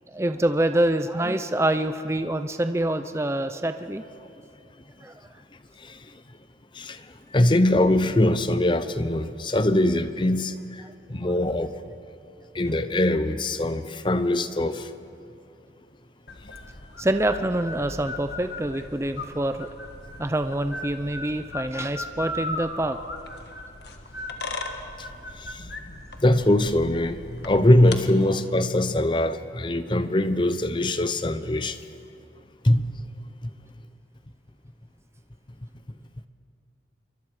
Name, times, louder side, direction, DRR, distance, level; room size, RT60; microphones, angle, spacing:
voice 1, 0.1-4.0 5.0-5.1 11.2-11.3 11.7-11.8 17.0-19.7 20.2-23.0, right 1 dB, 15° right, 9 dB, 0.6 m, -26 dB
voice 2, 7.3-10.8 11.1-11.7 12.5-14.9 25.4-25.7 26.2-31.8 32.6-32.9, left 1 dB, 25° left, 11 dB, 0.7 m, -22 dB
sound 1, 16.3-28.0, left 2 dB, 65° left, 1.6 m, -37 dB
27.5 x 23.5 x 4.9 m, 2.6 s
head